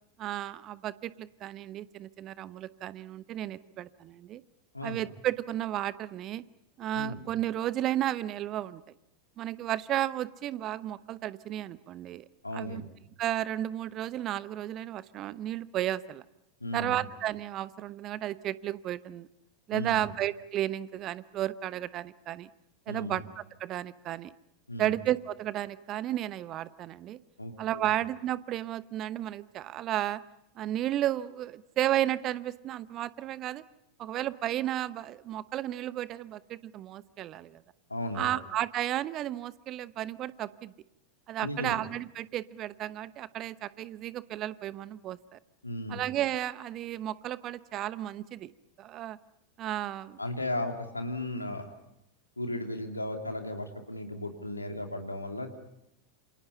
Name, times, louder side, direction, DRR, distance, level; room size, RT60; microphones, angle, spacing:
voice 1, 0.2-4.4 4.8-6.4 6.8-8.8 9.4-12.2 12.5-12.8 13.2-16.2 16.7-19.3 19.7-22.5 22.9-24.3 24.8-27.2 27.6-30.2 30.6-33.6 34.0-37.6 38.1-40.7 41.3-45.4 45.9-48.5 48.8-49.2 49.6-50.2, right 13 dB, 35° right, 17 dB, 0.9 m, -33 dB
voice 2, 12.4-12.8 16.6-17.0 19.7-20.1 22.9-23.2 24.7-24.9 27.4-27.9 37.9-38.3 41.4-41.8 45.6-46.0 50.2-51.7 52.4-55.6, left 1 dB, 85° left, 4 dB, 2.6 m, -35 dB
28.0 x 27.0 x 5.6 m, 0.83 s
figure-of-eight pair, 85°, 0 cm